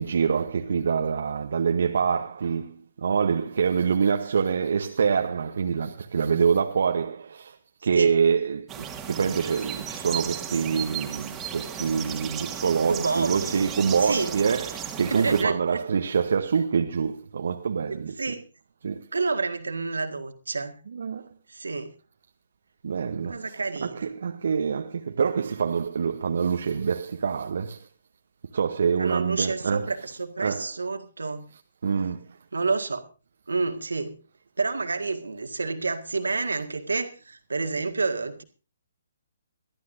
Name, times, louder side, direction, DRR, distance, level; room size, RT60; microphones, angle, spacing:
voice 1, 0.0-7.6 7.8-8.7 9.0-18.4 18.8-19.1 20.9-21.3 22.8-27.9 28.5-30.1 30.4-30.8 31.5-32.4, right 6 dB, 65° right, 0.9 m, -26 dB
sound 1, 8.7-15.4, right 8 dB, 15° right, 1.9 m, -35 dB
voice 2, 12.9-13.6 14.0-14.3 15.1-15.8 16.5-16.6 18.2-18.4 19.1-20.8 21.5-21.9 23.3-24.1 29.0-31.4 32.5-33.0 33.5-34.2 34.6-38.4, right 4 dB, 80° right, 1.8 m, -29 dB
22.0 x 13.5 x 2.7 m
figure-of-eight pair, 135°, 0 cm